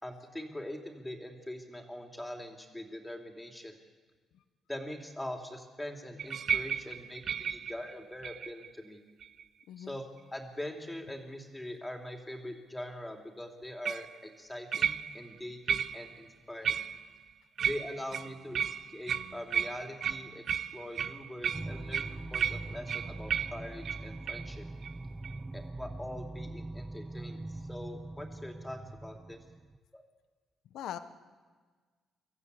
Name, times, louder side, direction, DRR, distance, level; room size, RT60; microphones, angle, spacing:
voice 1, 0.0-3.8 4.7-9.0 9.8-10.0 10.3-16.8 17.6-24.6 25.5-29.4 29.9-30.0, left 1 dB, 10° left, 2 dB, 3.2 m, -43 dB
sound 1, 6.2-8.7 9.2-9.6 13.9-14.1 14.7-15.3 15.7-16.2 16.6-17.2 17.6-24.5 24.8-25.0 25.2-25.4, right 7 dB, 60° right, 0.7 m, -34 dB
voice 2, 9.7-10.0 30.7-31.0, left 11 dB, 85° left, 10 dB, 1.1 m, -40 dB
sound 2, 21.5-29.8, right 2 dB, 15° right, 0.5 m, -42 dB
25.0 x 14.5 x 8.4 m, 1.4 s
cardioid pair, 90°, 0 cm